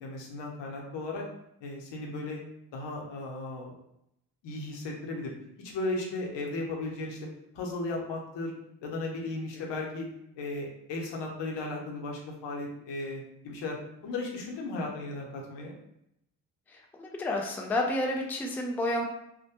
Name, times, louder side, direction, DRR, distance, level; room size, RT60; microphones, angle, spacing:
voice 1, 0.0-1.2 1.6-2.4 2.7-3.8 4.4-5.3 5.6-7.2 7.5-8.5 8.8-10.1 10.4-13.8 14.0-15.8, left 2 dB, 80° left, 0 dB, 0.7 m, -35 dB
voice 2, 16.7-19.0, left 1 dB, 5° left, 1 dB, 0.3 m, -30 dB
2.1 x 2.0 x 2.8 m, 0.78 s
cardioid pair, 70°, 42 cm